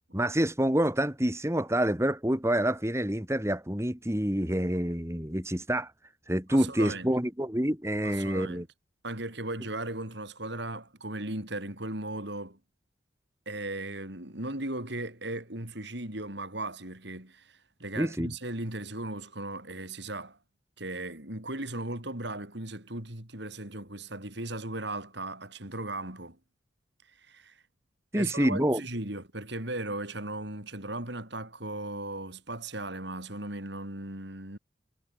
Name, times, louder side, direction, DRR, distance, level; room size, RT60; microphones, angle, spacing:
voice 1, 0.1-5.9 6.3-8.6 18.0-18.3 28.1-28.8, equal, 15° right, 2.2 m, -27 dB
voice 2, 6.5-7.1 8.0-8.6 9.0-12.6 13.5-20.4 20.8-26.4 27.1-27.6 28.1-34.6, right 2 dB, 55° right, 4.7 m, -37 dB
head